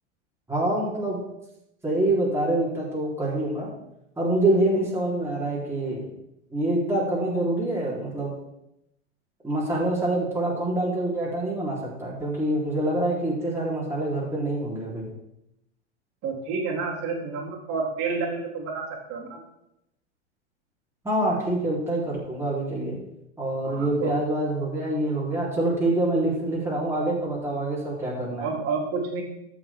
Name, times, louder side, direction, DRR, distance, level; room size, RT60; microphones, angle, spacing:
voice 1, 0.5-1.2 1.8-3.7 4.2-6.1 6.5-8.3 9.4-15.1 21.0-23.0 23.4-28.5, right 1 dB, 5° right, -7 dB, 3.9 m, -26 dB
voice 2, 16.2-19.4 23.6-24.2 28.4-29.2, right 4 dB, 40° right, -3 dB, 3.5 m, -29 dB
14.5 x 6.1 x 3.7 m, 0.85 s
hypercardioid pair, 115°, 36 cm